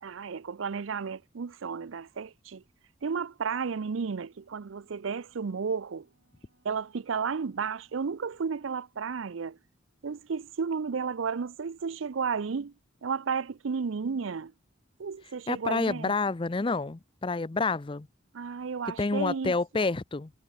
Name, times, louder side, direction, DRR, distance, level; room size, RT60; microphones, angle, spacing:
voice 1, 0.0-2.6 3.0-6.1 6.6-9.6 10.0-12.7 13.0-14.5 15.0-16.1 18.3-19.5, right 5 dB, 75° right, 0.5 m, -33 dB
Wind instrument woodwind instrument, 3.5-9.7, right 1 dB, 55° right, 7.7 m, -71 dB
voice 2, 15.5-18.1 19.0-20.3, left 3 dB, 25° left, 0.5 m, -28 dB
head